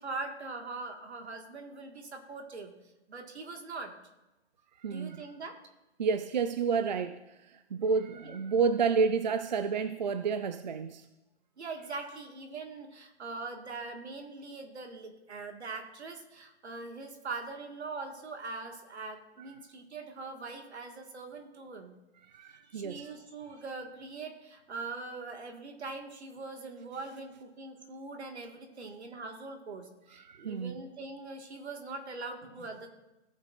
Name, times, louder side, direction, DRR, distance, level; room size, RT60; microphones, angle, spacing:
voice 1, 0.0-2.7 3.1-3.9 4.9-5.6 8.2-8.4 11.6-21.9 22.5-32.9, right 3 dB, 70° right, 4 dB, 1.8 m, -42 dB
voice 2, 4.8-5.3 6.0-7.2 7.5-11.0 22.3-23.1 30.2-30.8, right 5 dB, 40° right, 10 dB, 0.4 m, -30 dB
16.5 x 6.7 x 2.5 m, 0.99 s
hypercardioid pair, 160°, 34 cm